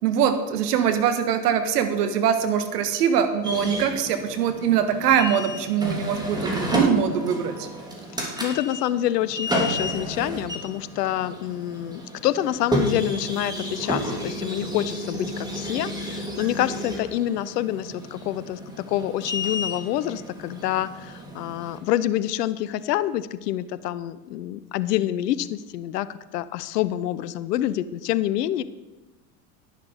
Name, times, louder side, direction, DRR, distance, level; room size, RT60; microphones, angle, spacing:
voice 1, 0.0-7.7, right 8 dB, 75° right, 9 dB, 1.6 m, -23 dB
sound 1, 3.4-21.8, equal, 10° right, 3.0 m, -31 dB
voice 2, 8.1-18.6 18.9-28.6, left 13 dB, 75° left, 16 dB, 0.8 m, -27 dB
11.0 x 10.5 x 5.0 m, 1.2 s
hypercardioid pair, 85°, 48 cm